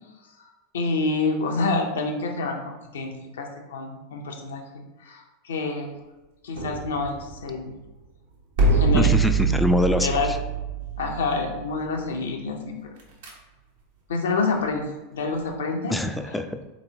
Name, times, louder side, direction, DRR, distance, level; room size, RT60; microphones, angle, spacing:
voice 1, 0.7-5.9 6.4-7.7 8.7-9.1 10.0-10.3 11.0-12.9 14.1-15.9, left 3 dB, 75° left, 2 dB, 0.6 m, -28 dB
sound 1, 6.5-7.8 8.6-11.9 13.0-13.3, right 4 dB, 70° right, 0.8 m, -24 dB
voice 2, 8.9-10.4 15.9-16.6, left 1 dB, 5° left, 7 dB, 0.3 m, -24 dB
3.5 x 3.0 x 2.7 m, 1.1 s
hypercardioid pair, 90°, 0 cm